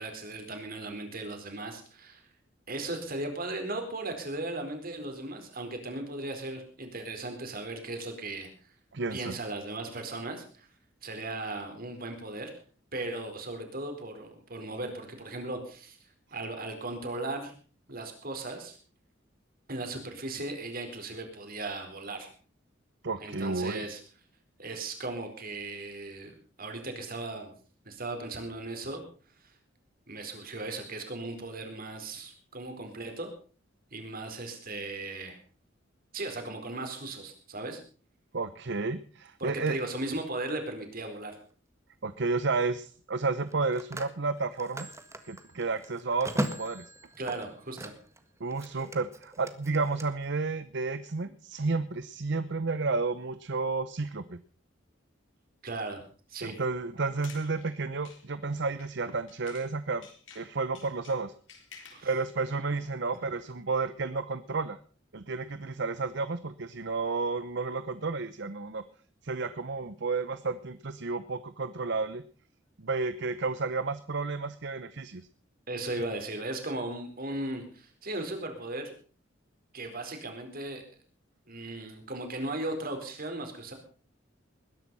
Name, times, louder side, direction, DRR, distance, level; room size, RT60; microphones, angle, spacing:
voice 1, 0.0-2.3 2.7-8.5 9.1-10.7 11.0-12.5 12.9-16.0 16.3-17.5 17.9-18.8 19.7-22.3 23.2-24.0 24.6-27.5 27.8-29.0 30.1-33.3 33.9-35.4 36.1-37.8 39.4-41.4 47.2-47.9 55.6-56.0 56.3-56.6 61.9-62.1 75.7-78.9 79.7-80.8 81.5-83.7, right 2 dB, 50° right, 5 dB, 4.4 m, -37 dB
voice 2, 8.9-9.4 23.0-23.9 38.3-39.8 42.0-44.9 45.2-46.8 48.4-54.4 56.4-60.1 60.3-61.3 62.0-64.8 65.1-68.8 69.2-72.2 72.8-75.2, right 3 dB, 65° right, 13 dB, 0.8 m, -31 dB
Telephone, 41.2-41.4 43.3-48.2 48.5-50.1, right 1 dB, 15° right, 1.6 m, -39 dB
sound 1, 57.0-59.7 60.0-62.1, left 6 dB, 75° left, 4.0 m, -52 dB
20.5 x 11.0 x 5.5 m, 0.41 s
head